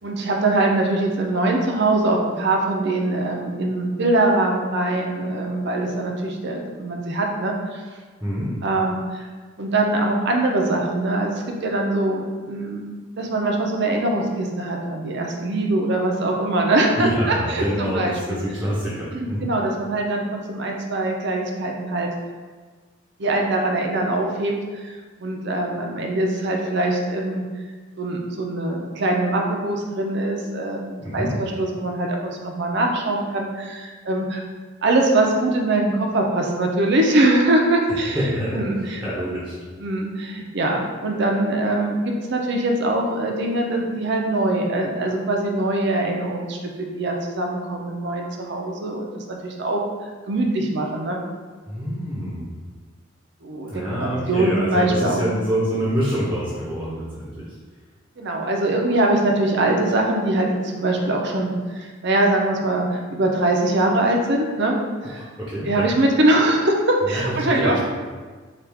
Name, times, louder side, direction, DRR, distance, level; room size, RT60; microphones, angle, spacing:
voice 1, 0.0-7.8 8.6-9.3 9.6-12.8 13.2-18.4 19.1-22.1 23.2-24.5 24.8-24.9 25.2-27.4 28.0-34.4 34.8-38.2 38.5-39.0 39.8-49.8 50.3-51.2 53.4-55.3 58.2-64.8 65.1-65.2 65.7-67.8, right 2 dB, 60° right, 1 dB, 0.6 m, -22 dB
voice 2, 8.2-8.5 17.0-19.4 31.0-31.3 38.1-39.5 51.7-52.4 53.7-57.5 65.0-65.1 65.4-65.9 67.0-67.8, equal, 10° right, -8 dB, 0.8 m, -26 dB
4.8 x 2.4 x 3.4 m, 1.4 s
head